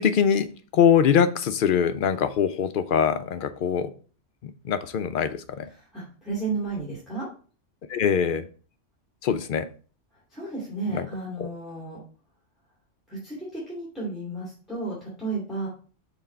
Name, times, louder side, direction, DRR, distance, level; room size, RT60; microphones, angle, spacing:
voice 1, 0.0-3.9 4.4-5.7 7.9-8.5 9.2-9.7 10.9-11.1 11.4-11.5, left 8 dB, 60° left, 10 dB, 0.6 m, -23 dB
voice 2, 5.7-7.3 10.3-12.0 13.1-15.7, right 3 dB, ahead, -7 dB, 2.4 m, -33 dB
5.9 x 4.0 x 4.3 m, 0.40 s
omnidirectional pair, 1.2 m